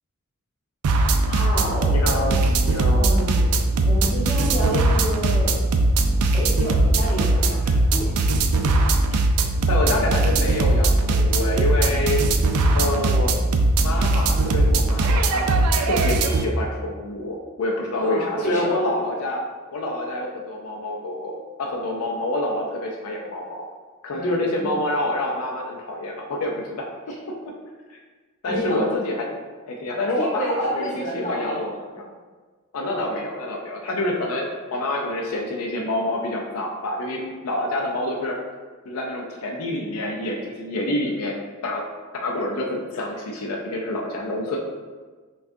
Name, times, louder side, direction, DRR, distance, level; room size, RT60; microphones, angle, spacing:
sound 1, 0.8-16.5, right 2 dB, 85° right, 0.4 m, -20 dB
voice 1, 1.2-2.0 2.3-2.4 2.9-3.5 3.9-5.6 5.9-8.1 18.0-19.0 24.1-24.7 27.1-27.2 28.5-29.0 30.2-31.9 32.8-33.2, equal, 35° left, -5 dB, 1.0 m, -30 dB
voice 2, 1.9-3.1 9.7-12.4 12.7-13.3 13.8-15.4 15.8-19.4 19.7-23.6 24.0-26.8 27.9-28.0 28.4-29.3 29.7-32.1 32.7-38.3 38.8-41.8 42.1-44.6, left 1 dB, 75° left, -1 dB, 0.4 m, -27 dB
5.7 x 2.3 x 2.6 m, 1.4 s
head